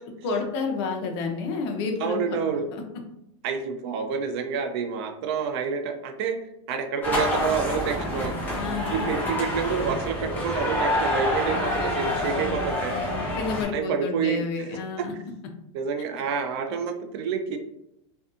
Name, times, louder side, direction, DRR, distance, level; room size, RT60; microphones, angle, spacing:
voice 1, 0.2-2.3 2.7-2.8 8.5-9.1 11.5-15.1, left 4 dB, 55° left, 3 dB, 0.5 m, -31 dB
voice 2, 2.0-2.7 3.4-8.4 8.9-13.0 13.7-14.8 15.7-17.6, right 6 dB, 55° right, 6 dB, 0.4 m, -28 dB
sound 1, 7.0-13.6, left 1 dB, 10° left, 0.8 m, -27 dB
2.6 x 2.2 x 2.4 m, 0.80 s
supercardioid pair, 165°, 16 cm